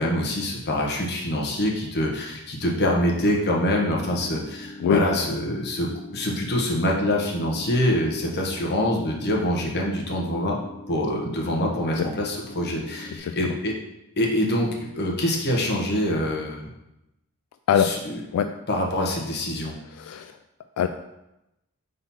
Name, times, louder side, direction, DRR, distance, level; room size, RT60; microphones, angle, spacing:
voice 1, 0.0-10.6 10.9-13.7 14.2-16.7 17.8-18.2 18.7-19.7, left 1 dB, 50° left, -1 dB, 1.1 m, -25 dB
sound 1, 3.2-13.2, left 2 dB, 15° left, 0.8 m, -42 dB
voice 2, 13.2-13.5 17.7-18.0 18.3-18.5 19.9-20.4 20.8-20.9, left 7 dB, 85° left, 9 dB, 0.3 m, -23 dB
4.2 x 4.0 x 5.6 m, 0.91 s
head